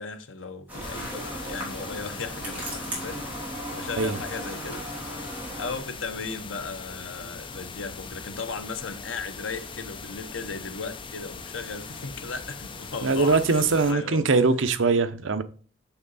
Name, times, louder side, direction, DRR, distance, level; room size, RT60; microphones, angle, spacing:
voice 1, 0.0-5.0 5.6-14.2, left 4 dB, 70° left, 1.0 m, -36 dB
sound 1, 0.7-5.8, right 1 dB, 10° right, 2.9 m, -36 dB
sound 2, 0.8-13.9, left 5 dB, 25° left, 0.5 m, -41 dB
voice 2, 13.0-15.4, right 4 dB, 70° right, 0.7 m, -22 dB
6.8 x 5.8 x 4.0 m
head